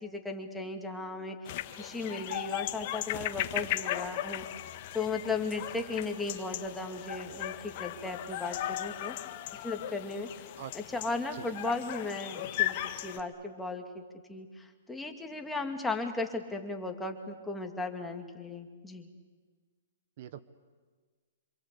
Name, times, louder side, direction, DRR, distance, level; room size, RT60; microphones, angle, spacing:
voice 1, 0.0-1.5 1.8-4.5 4.9-9.2 9.6-10.4 10.7-19.1, left 3 dB, 5° left, 3 dB, 2.4 m, -36 dB
sound 1, 1.4-13.2, left 13 dB, 45° left, 1.5 m, -37 dB
voice 2, 2.0-2.2 10.6-10.7 11.3-11.5 20.2-20.4, right 10 dB, 50° right, 13 dB, 1.1 m, -43 dB
26.5 x 26.5 x 8.4 m, 1.5 s
hypercardioid pair, 145°, 0 cm